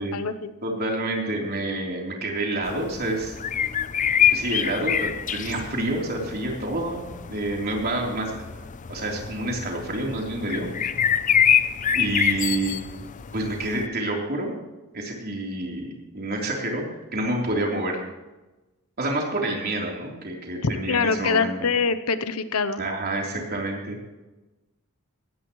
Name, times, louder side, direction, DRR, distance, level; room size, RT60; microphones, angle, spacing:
voice 1, 0.0-0.5 20.6-22.8, left 5 dB, 75° left, 11 dB, 0.8 m, -24 dB
voice 2, 0.6-3.4 4.3-7.0 7.3-10.7 11.9-12.8 13.3-14.5 14.9-16.8 17.1-18.0 19.0-21.5 22.8-24.0, right 2 dB, 45° right, -1 dB, 3.5 m, -28 dB
sound 1, 2.6-13.9, left 8 dB, 35° left, 0.5 m, -26 dB
17.0 x 14.5 x 3.1 m, 1.1 s
head